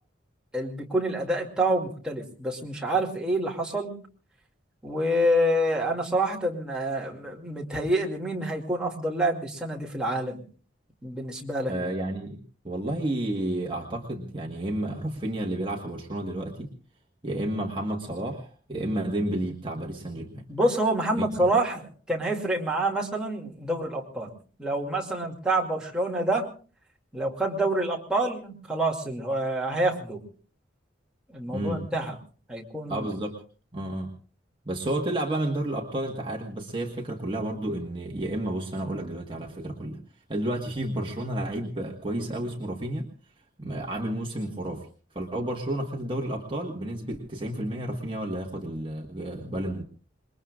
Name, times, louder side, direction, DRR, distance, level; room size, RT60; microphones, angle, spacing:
voice 1, 0.5-4.0 4.8-10.4 11.0-11.7 20.5-24.3 24.6-26.5 27.1-30.2 31.3-32.1 32.5-33.1, right 1 dB, 5° right, -2 dB, 2.4 m, -27 dB
voice 2, 11.7-16.7 17.2-20.5 21.2-21.3 31.5-31.9 32.9-33.4 33.7-34.1 34.6-40.0 40.3-43.1 43.6-44.9 45.1-49.8, right 1 dB, 25° right, 1 dB, 1.5 m, -31 dB
27.0 x 21.0 x 2.4 m, 0.39 s
head